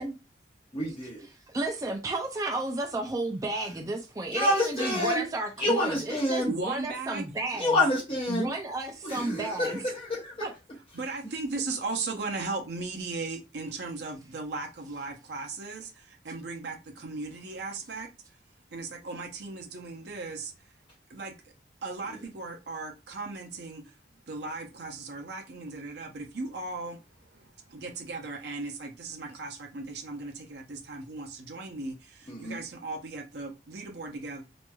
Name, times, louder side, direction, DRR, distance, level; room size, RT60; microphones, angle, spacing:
voice 1, 0.7-1.2 4.3-5.2 5.6-6.5 7.6-8.5 9.0-10.3 32.3-32.6, left 1 dB, 30° left, 0.8 m, -27 dB
voice 2, 1.5-7.8 8.3-9.8 10.4-10.5, right 2 dB, 20° right, 0.4 m, -32 dB
voice 3, 6.5-7.2 10.9-18.1 18.7-20.5 21.1-21.3 21.8-23.8 24.3-34.4, right 3 dB, 65° right, 0.6 m, -37 dB
3.0 x 2.5 x 2.2 m
head